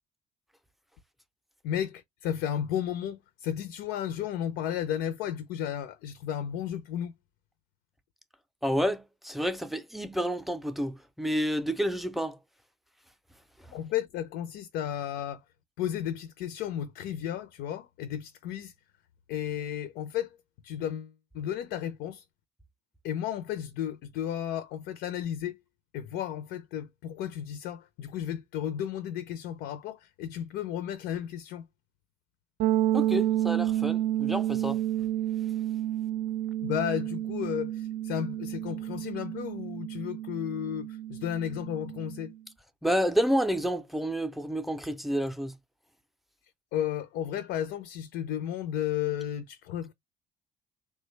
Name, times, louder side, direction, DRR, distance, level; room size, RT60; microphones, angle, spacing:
voice 1, 1.6-7.1 13.7-15.4 15.8-18.7 19.3-20.4 20.6-22.2 23.0-25.6 25.9-31.7 36.6-42.3 46.7-49.9, left 10 dB, 85° left, 0.5 m, -33 dB
voice 2, 8.6-12.4 32.9-34.8 42.8-45.5, equal, ahead, 0.4 m, -29 dB
sound 1, 32.6-42.3, right 13 dB, 70° right, 0.5 m, -30 dB
3.2 x 2.2 x 3.2 m
cardioid pair, 110°, 17 cm